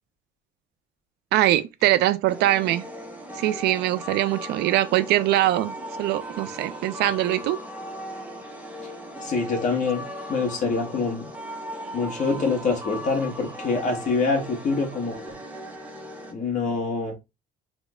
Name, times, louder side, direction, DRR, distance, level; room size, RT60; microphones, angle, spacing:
voice 1, 1.3-2.8 3.4-7.6, right 14 dB, 80° right, 0.4 m, -22 dB
sound 1, 2.3-16.3, equal, 10° right, 0.7 m, -38 dB
voice 2, 9.2-10.0 10.3-11.3 11.9-15.3 16.3-17.1, left 4 dB, 45° left, 1.4 m, -25 dB
3.5 x 2.1 x 3.5 m
cardioid pair, 110°, 17 cm